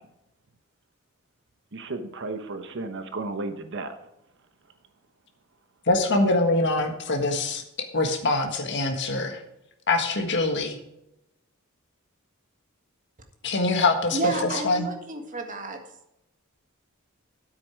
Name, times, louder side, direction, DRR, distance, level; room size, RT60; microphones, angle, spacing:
voice 1, 1.7-3.9, right 3 dB, 60° right, 7 dB, 1.1 m, -33 dB
voice 2, 5.9-7.6 7.9-9.4 9.9-10.8 13.4-14.2 14.6-14.9, left 2 dB, 60° left, 4 dB, 1.6 m, -24 dB
voice 3, 14.1-15.8, right 3 dB, 40° right, 4 dB, 1.7 m, -30 dB
9.7 x 8.5 x 4.8 m, 0.85 s
head